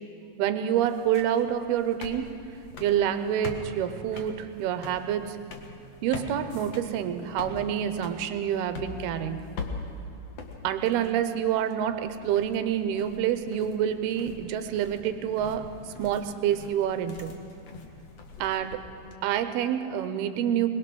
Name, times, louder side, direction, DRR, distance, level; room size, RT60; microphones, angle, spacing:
voice 1, 0.4-2.3 2.8-5.4 6.0-9.4 10.6-15.6 16.0-17.4 18.4-18.8 19.2-20.7, right 10 dB, 75° right, 9 dB, 2.6 m, -27 dB
sound 1, 0.7-19.1, left 3 dB, 65° left, 1.7 m, -43 dB
21.5 x 21.5 x 6.1 m, 2.4 s
omnidirectional pair, 4.9 m